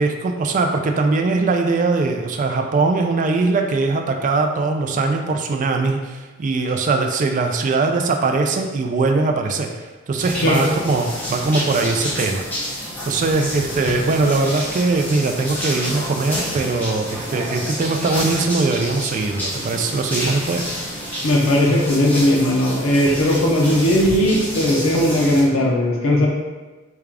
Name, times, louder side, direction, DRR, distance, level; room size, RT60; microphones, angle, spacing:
voice 1, 0.0-9.7 10.1-12.8 13.1-20.6, right 3 dB, 40° right, 4 dB, 0.3 m, -21 dB
sound 1, 10.2-25.4, equal, 10° left, 0.8 m, -29 dB
voice 2, 21.2-26.3, left 1 dB, 85° left, -2 dB, 0.6 m, -17 dB
3.5 x 2.3 x 3.3 m, 1.2 s
head